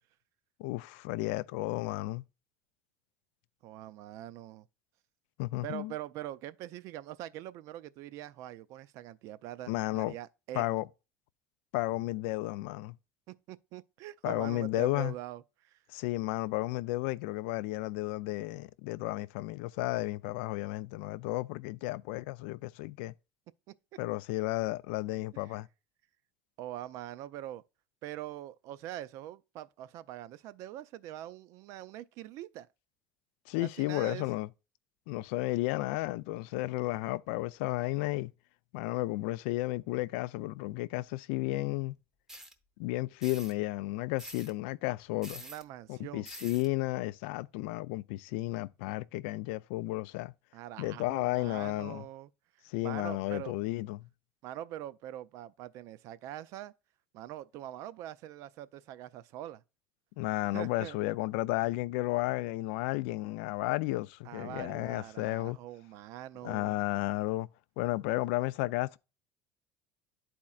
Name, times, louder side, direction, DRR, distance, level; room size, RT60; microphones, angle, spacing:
voice 1, 0.6-2.2 5.4-5.9 9.7-10.1 10.5-10.9 11.7-13.0 14.2-15.1 15.9-23.1 24.0-25.7 33.5-34.5 35.1-38.3 38.7-42.0 42.8-45.4 45.9-50.3 50.8-52.0 52.6-54.1 60.2-65.6 66.4-67.5 67.8-69.0, left 19 dB, 90° left, 0.3 m, -33 dB
voice 2, 3.6-4.7 5.6-10.6 13.3-15.8 23.7-23.8 25.3-25.5 26.6-27.6 28.0-32.7 33.6-34.3 45.4-46.3 50.5-52.3 52.8-53.5 54.4-56.7 57.1-59.6 60.5-61.0 64.3-66.8, right 13 dB, 55° right, 0.4 m, -43 dB
sound 1, 42.3-42.5 43.2-43.5 44.2-44.5 45.2-45.6 46.2-46.7, right 1 dB, 5° right, 0.7 m, -46 dB
11.5 x 4.3 x 2.3 m
cardioid pair, 150°, 6 cm